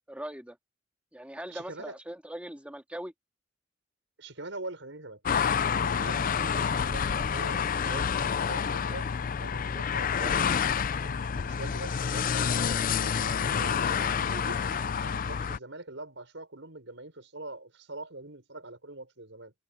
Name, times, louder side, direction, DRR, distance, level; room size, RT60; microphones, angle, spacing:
voice 1, 0.1-0.6 1.1-3.1, right 1 dB, 5° right, 2.2 m, -40 dB
voice 2, 1.5-2.0 4.2-5.5 5.7-9.1 9.4-10.6 11.0-19.5, right 2 dB, 75° right, 6.2 m, -43 dB
sound 1, 5.2-15.6, left 7 dB, 45° left, 0.5 m, -28 dB
head